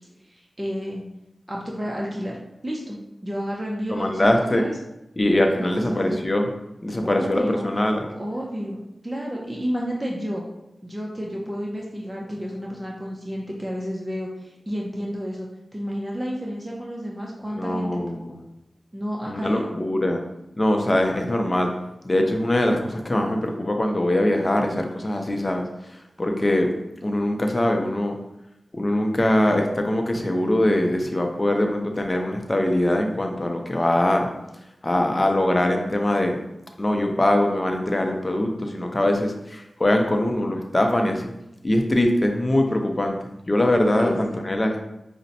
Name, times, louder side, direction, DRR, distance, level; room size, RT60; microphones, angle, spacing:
voice 1, 0.2-1.0 1.5-2.4 2.6-3.0 3.2-4.7 5.5-6.2 7.0-7.7 8.2-8.8 9.0-10.4 10.8-18.0 18.9-19.7 44.0-44.4, equal, 20° right, -2 dB, 0.6 m, -31 dB
voice 2, 3.9-4.6 5.2-6.5 6.8-8.0 17.5-18.4 19.3-20.2 20.6-21.7 22.0-26.7 27.0-28.1 28.7-34.3 34.8-36.4 36.8-41.3 41.6-43.2 43.5-44.8, left 1 dB, 35° left, 3 dB, 0.6 m, -22 dB
5.0 x 2.1 x 2.8 m, 0.88 s
cardioid pair, 45°, 0 cm